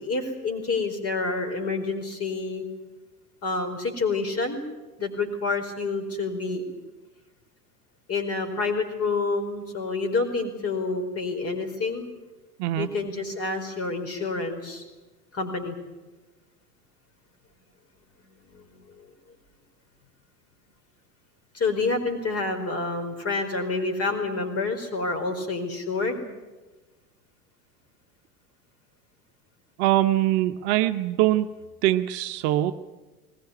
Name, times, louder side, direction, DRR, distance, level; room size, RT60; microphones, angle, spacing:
voice 1, 0.0-2.6 3.4-4.6 5.0-6.6 8.1-12.1 12.8-14.8 15.3-15.8 18.5-19.1 21.5-26.3, left 3 dB, 30° left, 7 dB, 4.7 m, -28 dB
voice 2, 29.8-31.5 31.8-32.7, right 14 dB, 45° right, 9 dB, 1.0 m, -22 dB
21.0 x 19.0 x 9.7 m, 1.2 s
figure-of-eight pair, 80°, 47 cm